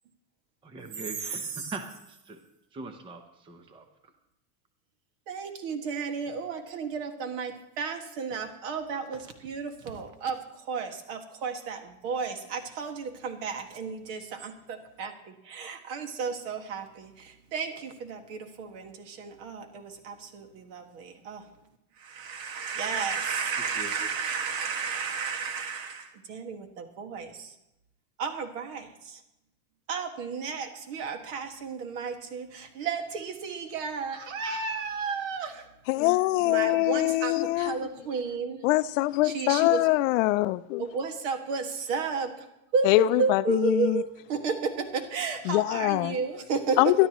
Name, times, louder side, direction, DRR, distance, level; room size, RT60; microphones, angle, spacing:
voice 1, 0.6-2.4 2.7-3.8 23.8-23.9, right 3 dB, 10° right, 0.7 m, -41 dB
voice 2, 1.2-1.7 5.3-21.5 22.0-27.5 28.2-29.2 29.9-35.7 36.4-38.6 39.2-39.9 40.8-47.1, right 5 dB, 55° right, 1.9 m, -33 dB
voice 3, 35.9-37.8 38.6-40.8 42.8-44.0 45.5-46.2 46.8-47.1, left 19 dB, 60° left, 0.5 m, -23 dB
23.5 x 12.0 x 3.0 m
supercardioid pair, 160°, 46 cm